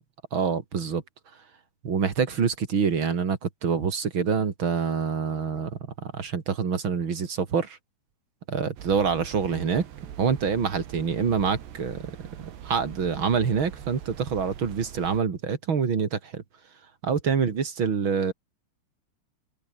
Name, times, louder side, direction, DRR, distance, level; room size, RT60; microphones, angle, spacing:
voice 1, 0.3-1.0 1.8-7.8 8.5-9.9 10.2-12.1 12.6-16.4 17.0-18.3, right 6 dB, 35° right, 2.3 m, -26 dB
sound 1, 8.8-15.2, right 10 dB, 80° right, 4.7 m, -43 dB
omnidirectional pair, 4.9 m